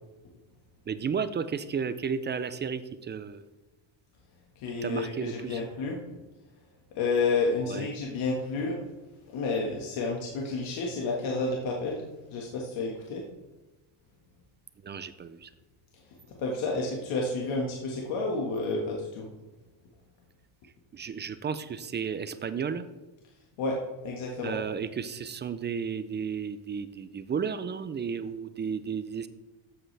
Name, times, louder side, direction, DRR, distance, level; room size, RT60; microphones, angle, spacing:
voice 1, 0.9-3.4 4.8-5.6 7.7-7.9 14.8-15.5 20.9-22.8 24.4-29.3, right 6 dB, 25° right, 13 dB, 0.3 m, -33 dB
voice 2, 4.6-6.0 7.0-8.8 9.3-13.2 16.4-19.3 23.6-23.8 24.0-24.6, left 3 dB, 75° left, -1 dB, 1.8 m, -30 dB
13.5 x 7.8 x 3.3 m, 1.1 s
cardioid pair, 140°, 48 cm